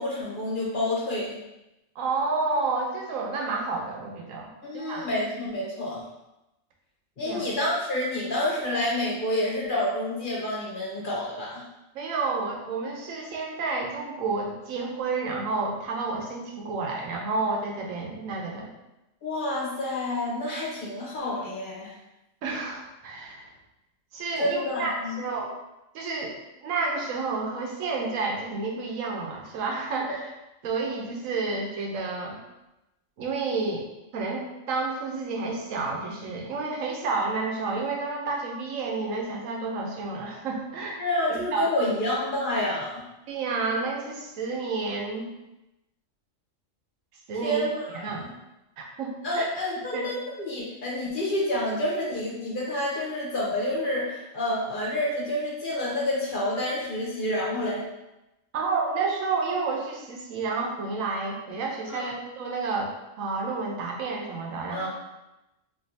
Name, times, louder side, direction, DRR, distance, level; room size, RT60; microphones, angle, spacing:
voice 1, 0.0-1.4 4.6-6.0 7.2-11.6 19.2-21.9 24.4-25.2 41.0-43.0 47.4-48.1 49.2-57.8 61.9-62.0 64.7-64.9, left 1 dB, 45° left, -5 dB, 1.0 m, -28 dB
voice 2, 2.0-5.1 7.2-7.5 11.9-18.7 22.4-23.5 24.1-25.5 25.9-26.4 26.6-30.3 30.6-32.4 33.2-33.9 34.1-41.0 41.3-41.7 43.3-45.3 47.3-47.7 47.9-48.3 48.8-49.5 49.9-50.1 58.5-64.9, right 3 dB, 90° right, 0 dB, 1.1 m, -30 dB
4.5 x 2.8 x 2.7 m, 0.94 s
omnidirectional pair, 1.4 m